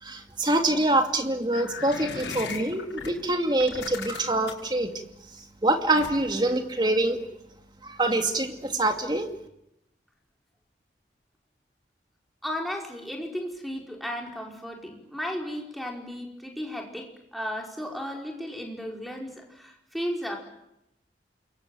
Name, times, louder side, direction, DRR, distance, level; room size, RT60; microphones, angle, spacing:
voice 1, 0.0-4.9 5.6-7.2 7.8-9.3, right 2 dB, 25° right, 5 dB, 2.5 m, -25 dB
sound 1, 1.5-3.1 3.6-4.7 6.0-6.4, left 4 dB, 80° left, 5.8 m, -37 dB
voice 2, 12.4-20.4, equal, ahead, 0 dB, 5.0 m, -34 dB
28.0 x 23.0 x 9.2 m, 0.84 s
head